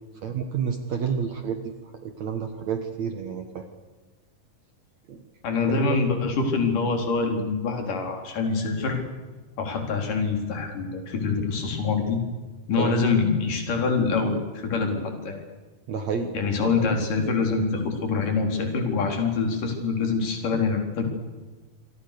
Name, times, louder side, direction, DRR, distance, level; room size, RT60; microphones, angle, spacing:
voice 1, 0.2-1.6 2.0-3.7 5.1-5.2 5.7-5.8 12.8-13.0 15.9-16.3 16.6-16.7, right 6 dB, 55° right, 6 dB, 2.4 m, -29 dB
voice 2, 5.4-9.0 9.6-12.2 12.7-15.4 16.3-21.1, left 4 dB, 60° left, 3 dB, 5.4 m, -25 dB
27.5 x 25.5 x 6.8 m, 1.3 s
omnidirectional pair, 4.2 m